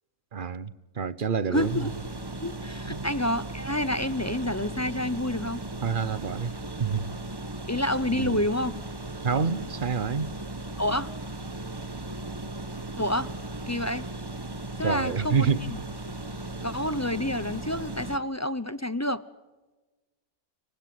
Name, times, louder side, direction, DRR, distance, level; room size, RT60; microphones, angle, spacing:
voice 1, 0.3-1.8 2.9-3.1 5.8-6.5 6.8-7.1 8.1-8.4 9.2-10.3 14.8-15.6, right 6 dB, 40° right, 1.1 m, -28 dB
voice 2, 1.5-1.9 2.4-5.6 7.7-8.8 10.8-11.1 12.9-13.3 13.7-14.0 14.8-15.8 16.6-19.2, left 1 dB, 15° left, 0.6 m, -28 dB
sound 1, 1.5-18.2, right 2 dB, 15° right, 1.2 m, -37 dB
29.5 x 24.5 x 7.9 m
omnidirectional pair, 1.6 m